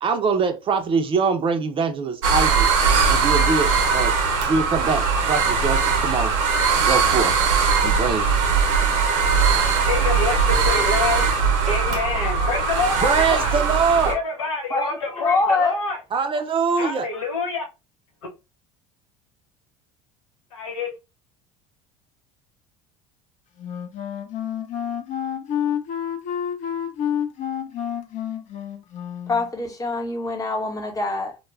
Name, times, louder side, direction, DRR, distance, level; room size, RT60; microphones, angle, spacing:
voice 1, 0.0-2.7 3.1-4.1 4.5-6.4 6.8-7.4 7.8-8.3 13.0-14.2 16.1-17.1, right 5 dB, 35° right, 0.5 m, -23 dB
sound 1, 2.2-14.1, right 5 dB, 80° right, 0.6 m, -20 dB
voice 2, 9.8-11.3 11.7-13.6 14.0-16.0 16.8-17.6 20.5-20.9, left 3 dB, 90° left, 0.7 m, -27 dB
voice 3, 14.7-15.8 29.3-31.4, left 3 dB, 20° left, 0.8 m, -24 dB
Wind instrument woodwind instrument, 23.6-29.5, left 9 dB, 50° left, 0.6 m, -29 dB
2.1 x 2.1 x 3.0 m
hypercardioid pair, 80°, 16 cm